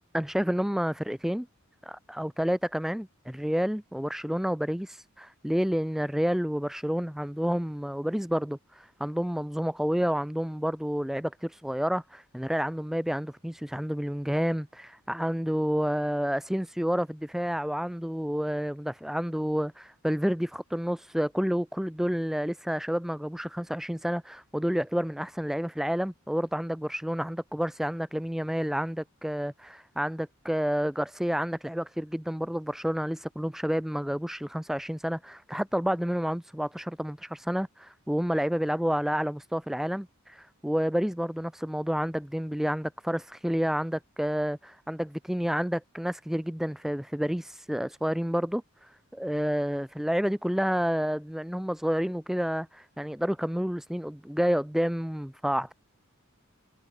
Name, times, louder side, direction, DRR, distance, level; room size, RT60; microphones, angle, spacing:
voice 1, 0.1-1.5 1.8-55.7, equal, ahead, 0.4 m, -29 dB
head